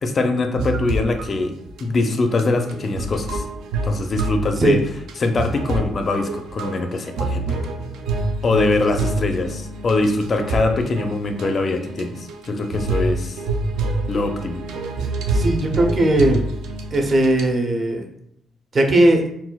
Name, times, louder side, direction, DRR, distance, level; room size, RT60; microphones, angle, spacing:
voice 1, 0.0-1.5 1.8-3.4 3.8-4.8 5.2-7.6 8.4-13.4 14.1-14.6, left 3 dB, 40° left, 6 dB, 0.4 m, -22 dB
sound 1, 0.6-1.3 1.7-1.8 2.2-17.5, right 2 dB, 85° right, 0.4 m, -27 dB
voice 2, 15.3-16.4 16.9-18.1 18.7-19.2, right 1 dB, 40° right, 3 dB, 0.6 m, -17 dB
4.0 x 2.2 x 2.2 m, 0.73 s
cardioid pair, 90°, 0 cm